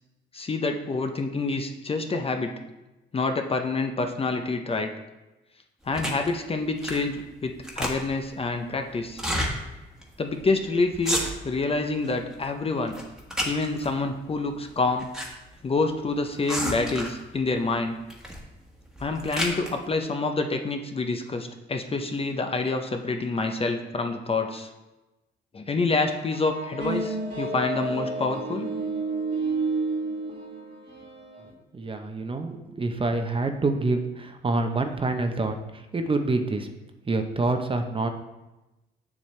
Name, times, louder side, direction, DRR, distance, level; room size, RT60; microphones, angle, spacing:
voice 1, 0.3-2.5 3.1-4.9 5.9-9.2 10.2-13.0 13.5-15.1 15.6-18.0 19.0-24.7 25.5-28.7, left 3 dB, 30° left, 5 dB, 0.6 m, -27 dB
sound 1, 5.9-6.3 6.8-7.1 7.4-8.3 9.1-9.5 10.0-10.1 10.3-10.6 10.9-11.6 12.0-12.5 12.9-13.9 14.7-15.3 15.5-15.6 16.5-17.2 18.1-18.4 18.9-19.7, equal, 5° right, 1.3 m, -30 dB
sound 2, 26.3-31.5, right 3 dB, 65° right, 1.7 m, -30 dB
voice 2, 31.7-36.7 37.1-38.1, right 2 dB, 25° right, 6 dB, 0.7 m, -27 dB
7.2 x 6.4 x 3.2 m, 1.0 s
cardioid pair, 90°, 20 cm